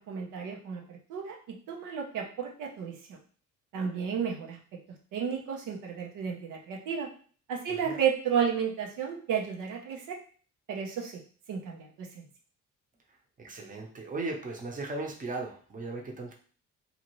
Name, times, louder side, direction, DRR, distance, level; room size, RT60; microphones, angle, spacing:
voice 1, 0.1-3.2 3.7-4.6 5.1-7.1 7.5-10.2 10.7-11.2 11.5-12.2, right 7 dB, 90° right, 0 dB, 0.7 m, -32 dB
voice 2, 13.4-16.3, right 2 dB, 25° right, 1 dB, 0.8 m, -37 dB
2.7 x 2.5 x 3.0 m, 0.42 s
cardioid pair, 90°, 30 cm